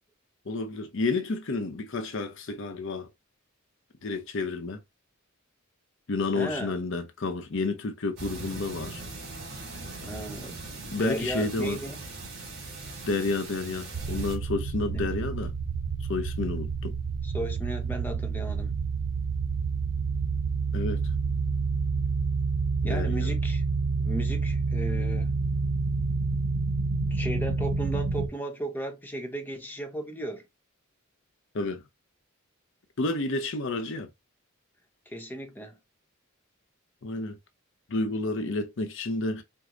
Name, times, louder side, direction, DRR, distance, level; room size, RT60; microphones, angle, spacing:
voice 1, 0.5-3.1 4.0-4.8 6.1-9.0 10.9-11.8 13.1-15.5 16.1-16.9 20.7-21.0 22.8-23.3 31.5-31.8 33.0-34.1 37.0-37.4 37.9-39.4, left 3 dB, 65° left, 0.7 m, -30 dB
voice 2, 6.3-6.8 10.0-12.0 14.9-15.1 17.2-18.7 22.8-23.6 24.0-25.3 27.1-30.5 35.1-35.7, right 1 dB, 10° left, 0.7 m, -35 dB
sound 1, 8.2-14.4, right 3 dB, 50° right, 2.6 m, -40 dB
sound 2, 13.9-28.3, right 4 dB, 85° right, 0.7 m, -28 dB
4.6 x 2.0 x 3.7 m
head